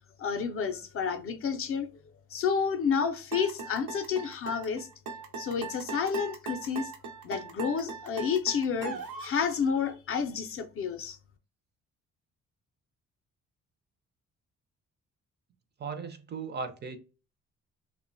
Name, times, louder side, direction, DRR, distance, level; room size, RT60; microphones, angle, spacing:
voice 1, 0.2-1.9 2.3-4.9 5.4-6.9 7.2-11.2, left 6 dB, 45° left, 0.5 m, -30 dB
sound 1, 3.3-9.4, right 4 dB, 85° right, 0.6 m, -39 dB
voice 2, 15.8-17.0, right 5 dB, 35° right, 0.4 m, -37 dB
2.9 x 2.1 x 2.5 m
cardioid pair, 90°, 30 cm